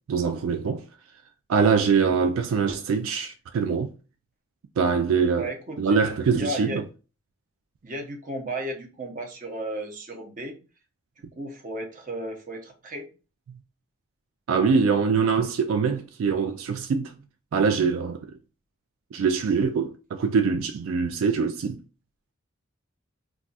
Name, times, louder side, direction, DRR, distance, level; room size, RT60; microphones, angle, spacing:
voice 1, 0.1-0.8 1.5-3.9 4.8-5.5 5.8-6.7 14.5-17.1 17.5-18.3 19.1-21.8, right 5 dB, 75° right, 0.3 m, -23 dB
voice 2, 5.4-6.0 6.3-6.8 7.8-10.6 11.4-13.1, right 1 dB, 40° right, 0.7 m, -34 dB
2.4 x 2.3 x 3.9 m
head